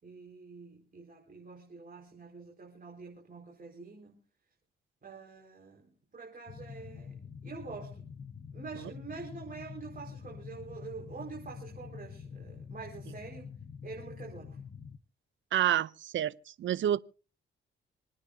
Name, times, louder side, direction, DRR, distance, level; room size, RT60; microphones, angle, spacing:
voice 1, 0.0-4.2 5.0-8.1 8.5-13.5 13.8-14.6, right 4 dB, 45° right, 4.8 m, -46 dB
sound 1, 6.5-15.0, left 6 dB, 40° left, 0.9 m, -46 dB
voice 2, 15.5-17.0, right 11 dB, 65° right, 0.6 m, -29 dB
27.5 x 9.8 x 2.8 m
supercardioid pair, 65°, 21 cm